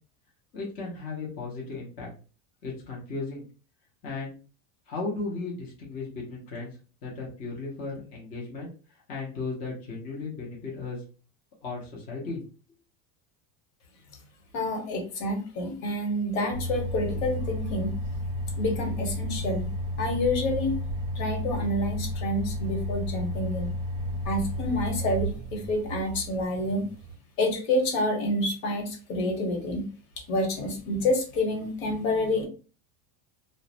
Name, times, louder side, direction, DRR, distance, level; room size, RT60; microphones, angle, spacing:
voice 1, 0.5-2.1 2.6-3.5 4.0-4.4 4.9-8.7 9.1-11.0 11.6-12.4, left 3 dB, 20° left, -4 dB, 0.4 m, -35 dB
voice 2, 14.5-17.9 18.6-19.7 20.0-20.8 21.1-23.7 24.2-26.8 27.4-29.9 30.3-32.5, left 1 dB, 70° left, 3 dB, 1.0 m, -28 dB
sound 1, 16.5-27.1, equal, 45° right, 0.5 m, -32 dB
2.4 x 2.0 x 2.7 m, 0.37 s
cardioid pair, 170°, 43 cm